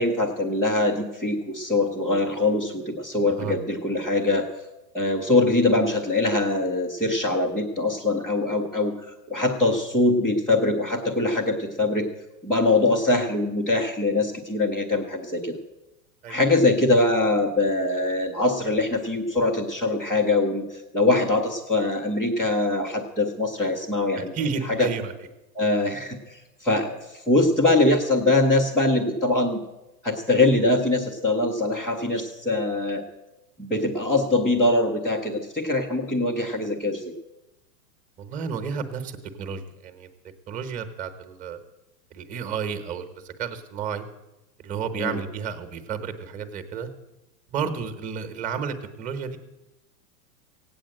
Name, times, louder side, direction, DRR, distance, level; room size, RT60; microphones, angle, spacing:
voice 1, 0.0-4.5 4.9-8.9 9.3-12.1 12.4-15.6 16.3-20.6 20.9-24.3 24.7-24.9 25.5-27.0 27.3-29.6 30.0-33.0 33.6-37.1 44.9-45.2, left 2 dB, ahead, -9 dB, 0.4 m, -23 dB
voice 2, 24.2-25.1 38.2-39.1 39.4-40.1 40.5-41.6 42.1-44.1 44.6-46.9 47.5-49.4, right 6 dB, 15° right, 8 dB, 1.0 m, -31 dB
16.5 x 8.8 x 7.6 m, 0.97 s
supercardioid pair, 160°, 47 cm